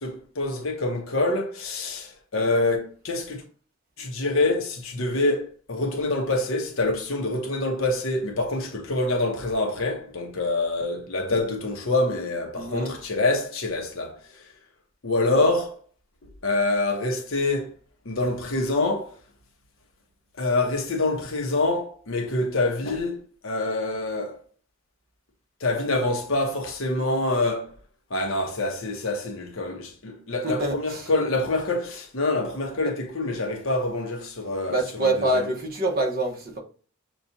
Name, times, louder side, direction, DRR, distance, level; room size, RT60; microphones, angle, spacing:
voice 1, 0.0-3.4 4.0-14.5 15.0-15.8 16.4-17.7 18.0-19.2 20.4-24.4 25.6-27.7 28.1-35.5, left 2 dB, 75° left, 0.9 m, -26 dB
voice 2, 12.5-12.9 30.4-31.1 34.7-36.6, right 1 dB, 45° right, 1.1 m, -26 dB
6.9 x 2.4 x 2.7 m
head